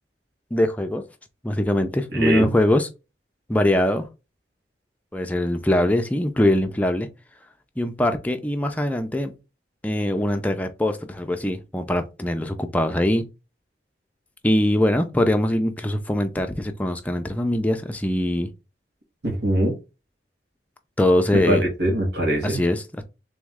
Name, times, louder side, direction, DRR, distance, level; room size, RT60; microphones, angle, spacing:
voice 1, 0.5-1.0 1.4-2.9 3.5-4.1 5.1-7.1 7.8-9.3 9.8-13.3 14.4-18.5 21.0-21.6 22.4-23.0, left 1 dB, 10° left, 0.4 m, -22 dB
voice 2, 2.1-2.5 19.2-19.7 21.5-22.6, right 1 dB, 70° right, 1.7 m, -22 dB
3.5 x 3.1 x 3.6 m
head